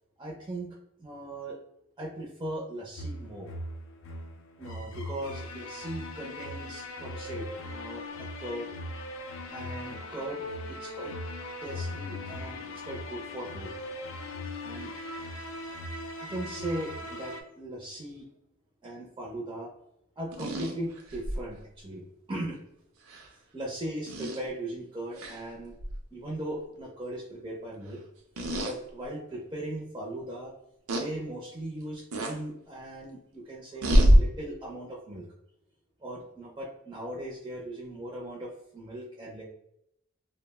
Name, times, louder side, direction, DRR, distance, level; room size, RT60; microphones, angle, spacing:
voice 1, 0.2-0.7 1.0-1.6 2.0-3.5 4.6-8.7 9.5-11.2 11.6-13.7 14.6-14.9 16.2-18.3 18.8-19.7 20.2-22.0 22.3-22.6 23.5-25.7 26.1-28.0 28.6-30.5 31.0-35.3 36.0-39.4, right 1 dB, 20° right, -4 dB, 0.4 m, -38 dB
sound 1, 3.0-17.4, left 1 dB, 65° left, 0.4 m, -39 dB
sound 2, 20.3-21.4 23.1-23.2 24.1-24.4 25.2-25.4 25.8-26.0 28.4-28.7 29.3-29.4 30.9-31.1 32.1-32.4 33.8-34.2, equal, 85° right, 0.5 m, -24 dB
2.3 x 2.0 x 3.4 m, 0.79 s
head